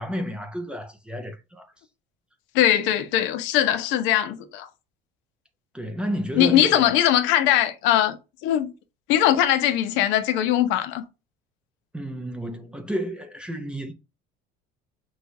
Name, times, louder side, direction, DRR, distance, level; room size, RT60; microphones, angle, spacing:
voice 1, 0.0-1.7 5.7-6.9 11.9-13.9, equal, 5° right, 0.5 m, -31 dB
voice 2, 2.5-4.7 6.4-8.2 8.4-8.7 9.1-11.0, left 11 dB, 70° left, 0.8 m, -21 dB
6.1 x 2.4 x 2.6 m
cardioid pair, 165°, 20 cm